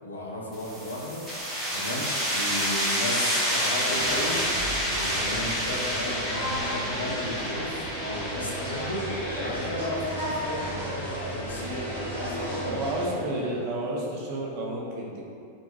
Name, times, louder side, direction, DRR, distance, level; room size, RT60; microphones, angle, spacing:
voice 1, 0.0-1.2 1.7-13.6, left 1 dB, 75° left, -3 dB, 0.4 m, -34 dB
sound 1, 0.5-11.9, equal, 20° right, 0.8 m, -30 dB
sound 2, 3.8-13.1, equal, 75° right, 0.8 m, -34 dB
voice 2, 12.3-15.2, right 1 dB, 45° right, -3 dB, 0.5 m, -31 dB
2.7 x 2.2 x 2.5 m, 2.4 s
figure-of-eight pair, 90°, 0 cm